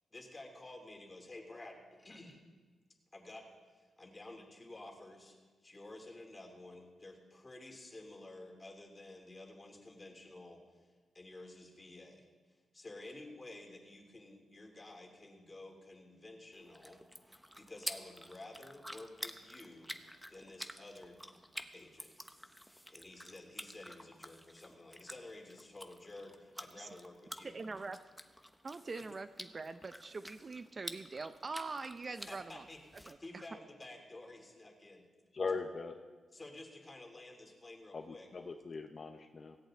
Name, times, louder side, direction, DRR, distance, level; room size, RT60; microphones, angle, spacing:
voice 1, 0.1-2.4 3.1-3.5 3.7-5.4 5.6-10.9 11.1-17.0 17.5-19.9 20.3-21.2 21.7-22.1 22.9-27.5 29.0-29.1 32.3-35.0 36.3-38.3, left 2 dB, 25° left, 2 dB, 3.3 m, -52 dB
sound 1, 16.5-33.1, equal, ahead, 1.0 m, -50 dB
voice 2, 27.4-28.0 28.6-32.6 33.1-33.4, right 3 dB, 35° right, 10 dB, 0.6 m, -43 dB
voice 3, 35.4-35.9 37.9-39.6, left 4 dB, 45° left, 4 dB, 1.0 m, -40 dB
17.5 x 17.0 x 3.9 m, 1.3 s
cardioid pair, 95°, 0 cm